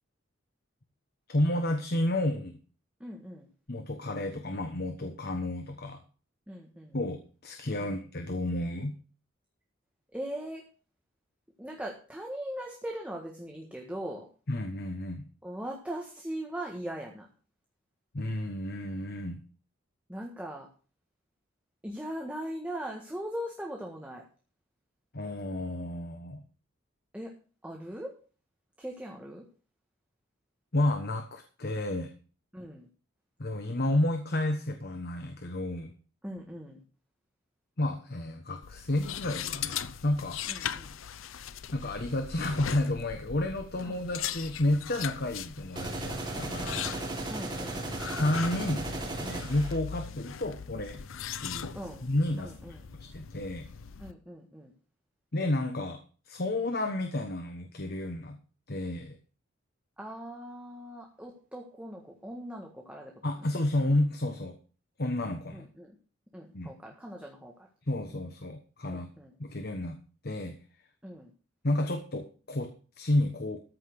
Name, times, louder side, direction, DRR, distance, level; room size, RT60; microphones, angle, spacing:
voice 1, 1.3-2.5 3.7-6.0 6.9-9.0 14.5-15.3 18.1-19.4 25.1-26.4 30.7-32.1 33.4-35.9 37.8-40.4 41.7-46.8 47.8-51.0 51.4-51.8 52.0-53.7 55.3-58.4 58.7-59.2 63.2-64.6 65.0-65.7 66.5-66.7 67.9-69.1 69.4-70.0 70.2-70.6 71.6-73.6, left 1 dB, 50° left, 6 dB, 1.2 m, -31 dB
voice 2, 3.0-3.5 6.5-7.0 7.8-7.9 10.1-10.6 11.6-14.3 15.4-17.3 20.1-20.7 21.8-24.2 27.1-27.3 27.6-28.1 28.8-29.4 32.5-32.9 36.2-36.8 40.5-41.0 43.8-44.0 47.3-47.8 51.7-52.0 52.4-52.8 54.0-54.7 60.0-63.2 65.5-65.9 66.3-67.7 68.9-69.3 71.0-71.3, equal, 5° right, 0 dB, 1.6 m, -40 dB
sound 1, 38.6-54.1, left 8 dB, 85° left, 0.6 m, -40 dB
sound 2, 45.8-49.8, right 2 dB, 25° right, 3.6 m, -36 dB
14.0 x 5.8 x 6.6 m, 0.38 s
head